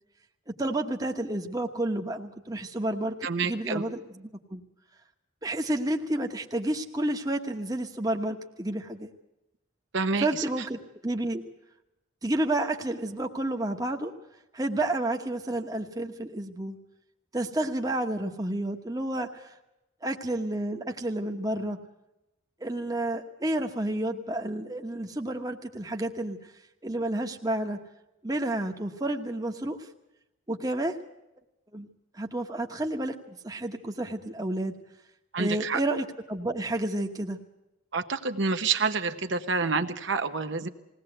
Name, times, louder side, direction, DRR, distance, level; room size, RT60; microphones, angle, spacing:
voice 1, 0.5-4.6 5.4-9.1 10.2-11.4 12.2-14.1 14.5-16.8 17.3-19.6 20.0-21.8 22.6-26.5 26.8-27.8 28.2-29.9 30.5-31.0 31.7-31.9 32.1-34.7 35.4-37.4, right 1 dB, 20° right, 3 dB, 1.1 m, -30 dB
voice 2, 3.2-3.8 9.9-10.3 35.3-35.8 37.9-40.7, right 4 dB, 65° right, 7 dB, 1.0 m, -28 dB
20.5 x 17.5 x 7.8 m, 0.93 s
head